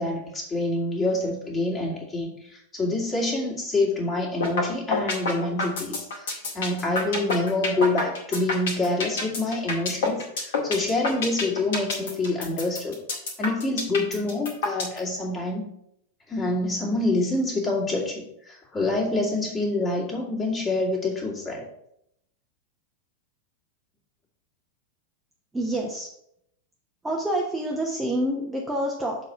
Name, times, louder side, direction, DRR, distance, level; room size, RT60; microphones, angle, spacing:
voice 1, 0.0-13.0 13.4-15.7 16.3-21.6, left 2 dB, 20° left, -2 dB, 2.3 m, -26 dB
sound 1, 4.4-4.6 4.9-15.0, left 3 dB, 60° left, 2.0 m, -27 dB
voice 2, 25.5-26.1 27.0-29.2, right 1 dB, 10° right, -1 dB, 1.0 m, -27 dB
7.0 x 4.2 x 5.5 m, 0.74 s
figure-of-eight pair, 90°, 0 cm